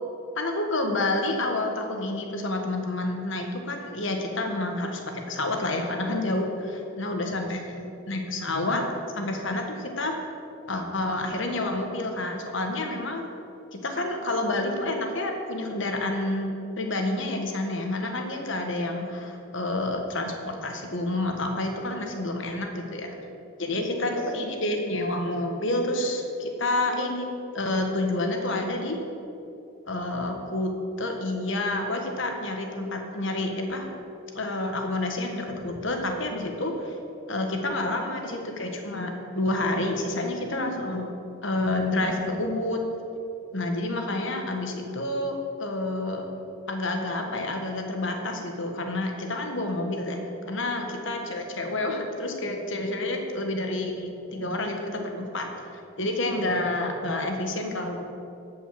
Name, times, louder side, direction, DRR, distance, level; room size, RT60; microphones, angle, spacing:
voice 1, 0.3-8.8 9.1-10.1 10.7-13.2 13.7-16.5 16.8-23.1 23.6-29.0 29.9-33.9 34.3-36.9 37.3-41.1 41.4-42.8 43.5-46.3 46.7-50.2 50.5-55.5 56.0-58.0, left 2 dB, 60° left, 3 dB, 1.4 m, -29 dB
12.0 x 5.5 x 7.6 m, 2.7 s
head